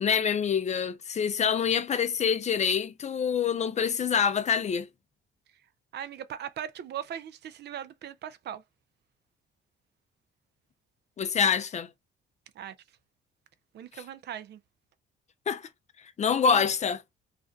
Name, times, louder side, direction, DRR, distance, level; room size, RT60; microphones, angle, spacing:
voice 1, 0.0-4.9 11.2-11.9 15.5-15.6 16.2-17.0, left 7 dB, 35° left, 0.4 m, -26 dB
voice 2, 5.9-8.6 12.6-12.7 13.7-14.6 16.5-16.7, right 10 dB, 60° right, 0.5 m, -39 dB
2.4 x 2.2 x 2.5 m
cardioid pair, 90°, 20 cm